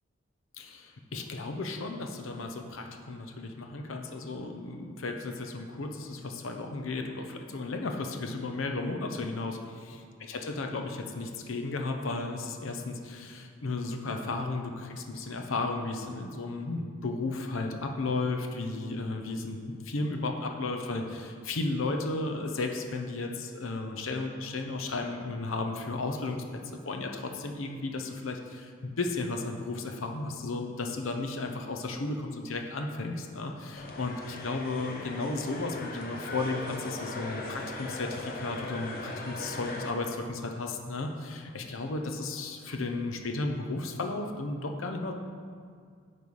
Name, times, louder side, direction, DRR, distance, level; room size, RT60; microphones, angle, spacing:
voice 1, 0.6-9.6 10.3-26.4 26.9-45.1, left 3 dB, 80° left, 3 dB, 0.7 m, -34 dB
sound 1, 33.8-39.9, left 2 dB, 50° left, 0.8 m, -39 dB
9.3 x 3.3 x 5.4 m, 2.1 s
head